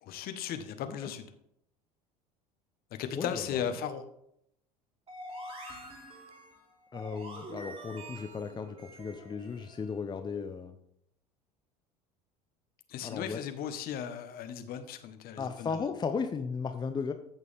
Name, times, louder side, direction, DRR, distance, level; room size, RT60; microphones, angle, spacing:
voice 1, 0.0-1.3 3.0-4.0 12.9-15.8, left 8 dB, 45° left, 9 dB, 1.3 m, -36 dB
voice 2, 3.1-3.6 6.9-10.8 13.0-13.4 15.4-17.1, left 5 dB, 20° left, 8 dB, 0.8 m, -36 dB
sound 1, 5.1-10.0, right 1 dB, 25° right, 3.7 m, -46 dB
14.5 x 6.7 x 3.6 m, 0.74 s
figure-of-eight pair, 70°, 21 cm